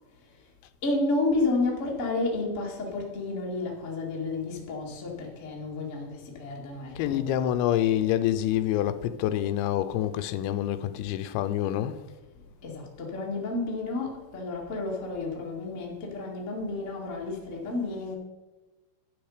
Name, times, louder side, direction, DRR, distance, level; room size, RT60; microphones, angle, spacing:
voice 1, 0.8-7.3 12.6-18.1, left 3 dB, 65° left, 0.7 m, -31 dB
voice 2, 7.0-12.0, left 12 dB, 85° left, 2.8 m, -27 dB
12.0 x 9.0 x 4.9 m
omnidirectional pair, 5.5 m